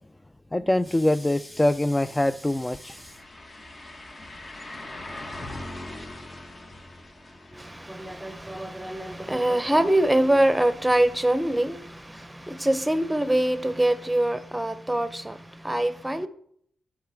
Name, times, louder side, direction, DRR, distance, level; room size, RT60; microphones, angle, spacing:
voice 1, 0.5-3.2, left 1 dB, 15° left, 0.3 m, -24 dB
sound 1, 2.1-11.9 12.2-12.3 15.1-15.2, left 1 dB, 35° left, 1.2 m, -43 dB
voice 2, 7.5-16.3, right 1 dB, 10° right, 0.8 m, -24 dB
11.5 x 4.8 x 3.5 m
supercardioid pair, 50°, 0 cm